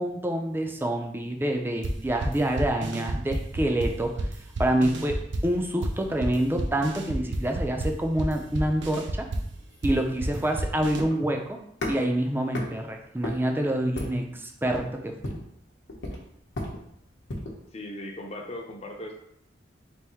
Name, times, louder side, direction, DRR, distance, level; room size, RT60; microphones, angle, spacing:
voice 1, 0.0-4.3 4.6-9.3 9.8-11.6 11.9-15.4, right 1 dB, 10° right, 3 dB, 0.4 m, -27 dB
sound 1, 1.8-11.0, right 1 dB, 85° right, 0.5 m, -31 dB
Foot Steps, 8.9-17.6, left 1 dB, 85° left, 0.9 m, -37 dB
voice 2, 17.7-19.1, left 1 dB, 35° left, 1 dB, 0.6 m, -38 dB
3.4 x 2.6 x 4.4 m, 0.74 s
head